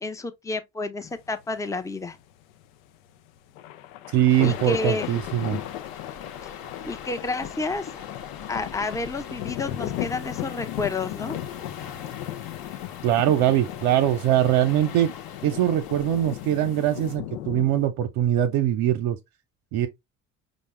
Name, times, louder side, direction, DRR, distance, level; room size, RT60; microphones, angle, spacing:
voice 1, 0.0-2.2 4.4-5.1 6.4-6.5 6.8-7.9 8.5-11.4, left 3 dB, 10° left, 0.6 m, -30 dB
sound 1, 1.0-17.9, left 13 dB, 80° left, 0.5 m, -36 dB
voice 2, 4.1-5.6 13.0-15.1 15.4-19.2 19.7-19.9, right 11 dB, 65° right, 0.6 m, -22 dB
sound 2, 4.3-17.2, left 6 dB, 55° left, 0.9 m, -43 dB
5.2 x 2.1 x 3.1 m
hypercardioid pair, 60°, 41 cm